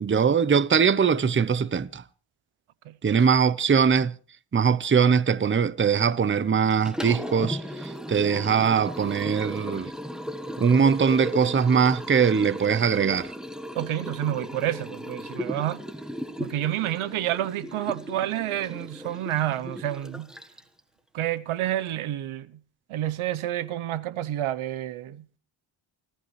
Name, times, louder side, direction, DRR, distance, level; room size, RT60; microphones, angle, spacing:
voice 1, 0.0-2.0 3.0-4.1 4.5-9.9 10.6-13.3, right 6 dB, 25° right, 0.7 m, -22 dB
voice 2, 2.8-3.2 13.8-15.8 16.4-20.3 21.1-22.6 22.9-25.4, right 12 dB, 85° right, 0.8 m, -29 dB
Liquid, 6.7-20.8, equal, ahead, 1.1 m, -36 dB
28.0 x 14.0 x 3.1 m
cardioid pair, 95°, 48 cm